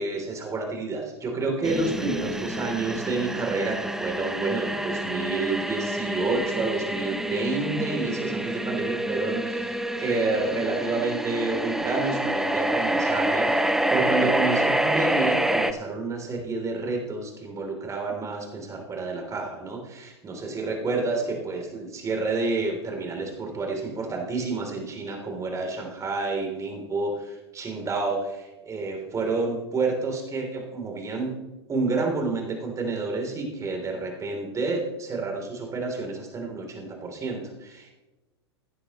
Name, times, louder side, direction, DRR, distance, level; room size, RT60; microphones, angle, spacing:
voice 1, 0.0-31.3 31.7-37.9, right 3 dB, 20° right, 2 dB, 3.3 m, -29 dB
sound 1, 1.6-15.7, right 1 dB, 5° right, 0.8 m, -27 dB
16.0 x 10.5 x 3.1 m, 1.0 s
hypercardioid pair, 100°, 14 cm